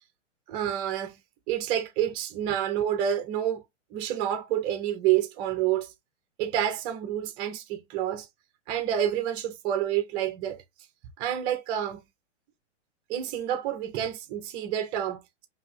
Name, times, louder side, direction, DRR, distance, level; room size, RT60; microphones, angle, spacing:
voice 1, 0.5-1.2 1.5-3.6 3.9-5.9 6.4-8.3 8.7-10.6 11.2-12.0 13.1-15.5, right 11 dB, 15° right, 0.4 m, -28 dB
5.0 x 2.7 x 2.8 m
hypercardioid pair, 145°, 37 cm